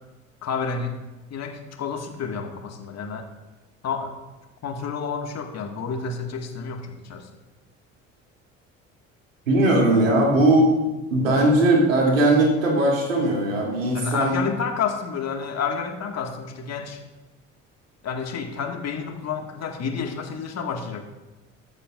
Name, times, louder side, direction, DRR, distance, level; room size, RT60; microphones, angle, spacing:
voice 1, 0.4-1.0 1.3-3.3 3.8-4.2 4.6-7.3 13.9-17.0 18.0-21.0, left 5 dB, 40° left, 3 dB, 2.0 m, -30 dB
voice 2, 9.5-10.7 11.1-14.4, right 1 dB, 80° right, -2 dB, 3.0 m, -19 dB
21.5 x 8.6 x 2.6 m, 1.1 s
figure-of-eight pair, 55°, 39 cm